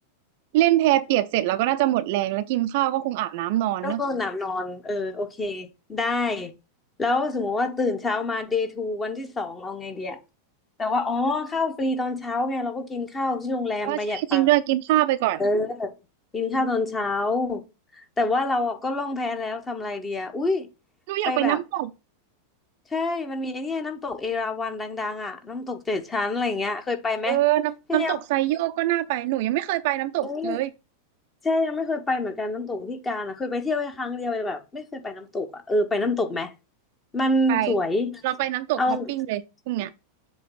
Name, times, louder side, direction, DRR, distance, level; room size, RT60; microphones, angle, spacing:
voice 1, 0.5-4.0 13.8-15.4 21.1-21.9 27.3-30.7 37.5-37.7 38.2-39.9, right 15 dB, 50° right, 0.5 m, -24 dB
voice 2, 3.8-6.5 7.0-10.2 10.8-14.5 15.4-15.9 16.3-17.6 17.9-20.7 21.2-21.6 22.9-27.4 27.9-28.2 30.2-30.6 31.4-36.5 37.1-38.2 38.8-39.1, left 2 dB, 20° left, 1.1 m, -27 dB
7.7 x 2.9 x 5.7 m
figure-of-eight pair, 90°, 0 cm